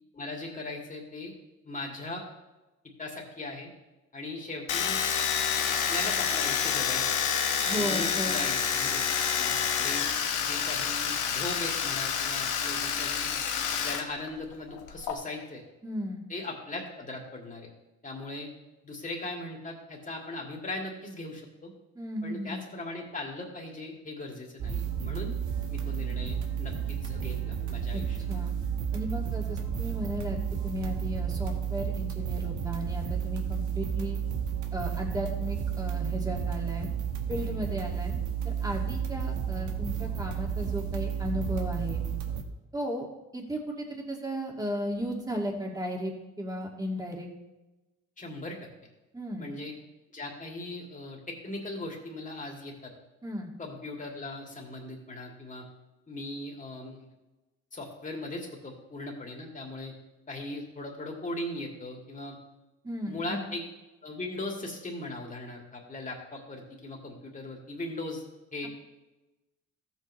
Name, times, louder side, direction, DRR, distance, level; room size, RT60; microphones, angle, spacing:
voice 1, 0.1-1.3 1.6-2.2 3.0-3.7 4.1-5.0 5.6-7.3 7.7-9.1 9.4-10.0 10.4-13.3 13.8-15.6 16.3-17.7 18.0-18.5 18.8-21.7 22.2-25.3 25.7-28.2 48.2-48.6 49.4-49.7 50.1-52.9 53.6-55.7 56.1-57.1 57.7-59.9 60.3-62.4 63.1-63.6 64.0-68.2 68.5-68.7, left 2 dB, 25° left, -1 dB, 2.8 m, -39 dB
Domestic sounds home sounds, 4.7-14.0 14.3-15.1, left 7 dB, 80° left, 1.2 m, -28 dB
voice 2, 7.7-8.4 15.8-16.2 21.9-22.6 27.9-28.5 28.9-34.2 34.7-36.9 37.3-38.1 38.4-42.0 42.7-43.1 43.3-46.1 46.4-47.3 49.1-49.5 53.2-53.5 62.8-63.5, equal, 10° right, -1 dB, 2.3 m, -35 dB
sound 1, 24.6-42.4, right 8 dB, 75° right, 1.2 m, -32 dB
14.5 x 8.1 x 3.3 m, 1.0 s
cardioid pair, 90°, 30 cm